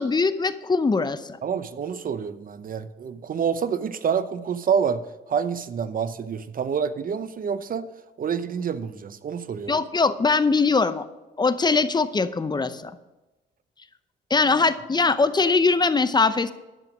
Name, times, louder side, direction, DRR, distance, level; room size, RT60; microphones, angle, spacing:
voice 1, 0.0-1.4 9.7-11.0 11.4-12.9 14.3-16.5, left 4 dB, 20° left, 13 dB, 0.6 m, -21 dB
voice 2, 1.4-5.0 5.3-7.9 8.2-9.8, right 7 dB, 45° right, 13 dB, 0.8 m, -27 dB
11.0 x 7.0 x 6.2 m, 1.1 s
cardioid pair, 90°, 20 cm